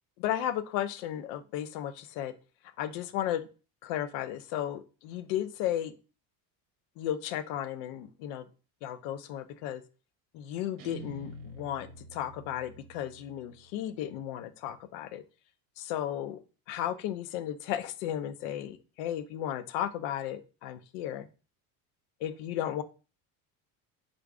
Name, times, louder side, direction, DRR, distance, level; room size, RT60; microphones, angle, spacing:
voice 1, 0.2-2.3 2.8-3.4 3.8-5.9 7.0-8.4 8.8-9.8 10.3-15.2 15.8-16.4 16.7-21.3 22.2-22.8, left 11 dB, 75° left, 13 dB, 0.6 m, -34 dB
Guitar, 10.8-14.0, right 1 dB, 50° right, 0.8 m, -48 dB
4.5 x 2.5 x 2.3 m, 0.33 s
supercardioid pair, 90°, 45 cm